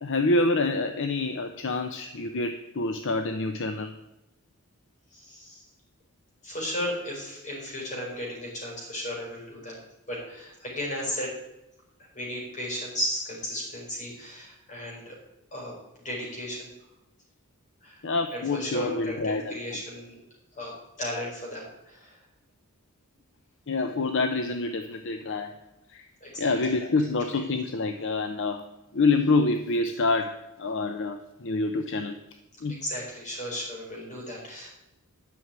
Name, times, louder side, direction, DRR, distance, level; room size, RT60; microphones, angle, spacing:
voice 1, 0.0-3.9 18.0-19.8 23.7-25.6 25.9-26.1 26.4-32.2 32.6-32.8, left 3 dB, 60° left, 7 dB, 0.7 m, -27 dB
voice 2, 5.1-5.6 6.4-9.8 10.1-11.3 12.1-15.2 15.5-15.7 16.0-16.7 17.8-18.0 18.3-20.2 20.5-22.2 26.2-26.7 32.7-34.7, equal, 35° left, -2 dB, 5.0 m, -35 dB
11.5 x 6.4 x 8.9 m, 0.93 s
head